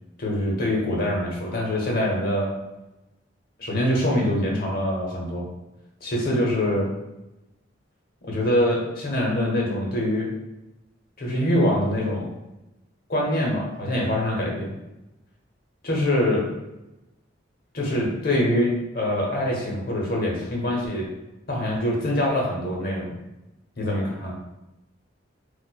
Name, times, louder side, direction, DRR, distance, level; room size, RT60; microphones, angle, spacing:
voice 1, 0.2-2.5 3.6-5.5 6.0-6.9 8.3-10.3 11.2-12.3 13.1-14.7 15.8-16.5 17.7-21.1 21.5-23.2 23.8-24.3, left 1 dB, 50° left, -2 dB, 0.9 m, -24 dB
4.2 x 2.4 x 2.2 m, 0.95 s
head